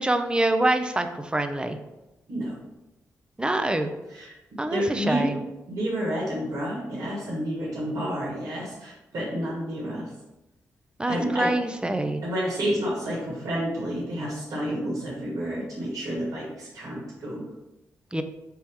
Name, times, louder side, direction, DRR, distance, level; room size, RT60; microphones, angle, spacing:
voice 1, 0.0-1.8 3.4-3.9 4.6-5.4 11.0-12.2 18.1-18.2, right 1 dB, 15° right, 8 dB, 0.5 m, -25 dB
voice 2, 4.1-5.3 5.7-10.1 11.1-11.5 12.2-17.5, equal, 70° right, -5 dB, 1.5 m, -30 dB
4.4 x 3.1 x 3.5 m, 0.99 s
supercardioid pair, 45°, 6 cm